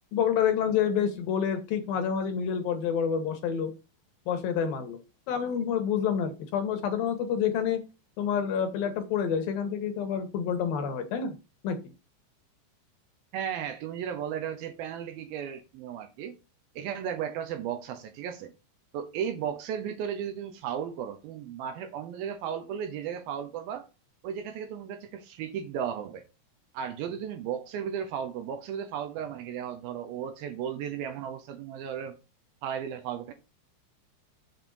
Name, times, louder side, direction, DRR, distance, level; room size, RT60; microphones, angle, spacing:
voice 1, 0.1-3.7 4.3-5.0 5.3-7.8 8.2-11.4 11.6-11.8, left 7 dB, 70° left, 2.3 m, -28 dB
voice 2, 13.3-16.4 16.8-18.5 18.9-23.9 24.2-26.3 26.7-32.2 32.6-33.3, right 8 dB, 80° right, 2.2 m, -35 dB
7.5 x 4.2 x 6.9 m
omnidirectional pair, 5.2 m